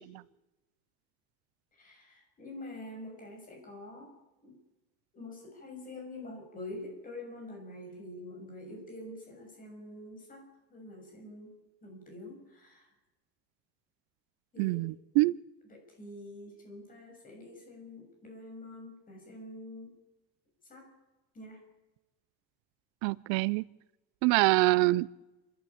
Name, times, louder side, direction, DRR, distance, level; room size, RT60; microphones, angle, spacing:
voice 1, 1.7-4.1 4.4-4.6 5.1-12.9 14.5-14.8 15.7-20.0 20.7-20.9 21.3-21.6, left 1 dB, 25° left, 2 dB, 6.9 m, -46 dB
voice 2, 14.6-15.3 23.0-23.6 24.2-25.1, right 22 dB, 80° right, 20 dB, 0.7 m, -25 dB
29.0 x 12.5 x 8.6 m, 1.0 s
cardioid pair, 165°, 35 cm